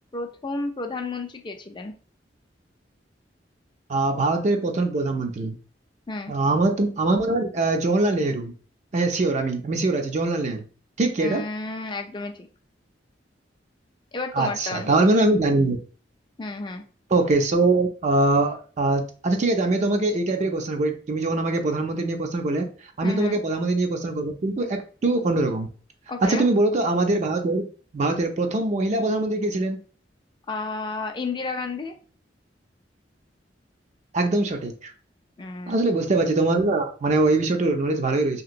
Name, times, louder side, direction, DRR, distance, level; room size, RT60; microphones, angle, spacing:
voice 1, 0.1-1.9 6.1-6.3 11.2-12.5 14.1-14.9 16.4-16.8 23.0-23.4 26.1-26.5 30.5-32.0 35.4-35.8, left 3 dB, 25° left, 4 dB, 0.4 m, -32 dB
voice 2, 3.9-5.5 6.3-8.5 8.9-10.6 11.0-11.4 14.3-15.8 17.1-22.7 23.0-25.7 26.2-27.7 27.9-29.8 34.1-34.9 35.7-38.4, right 2 dB, 40° right, 4 dB, 0.4 m, -22 dB
2.9 x 2.9 x 2.5 m, 0.40 s
head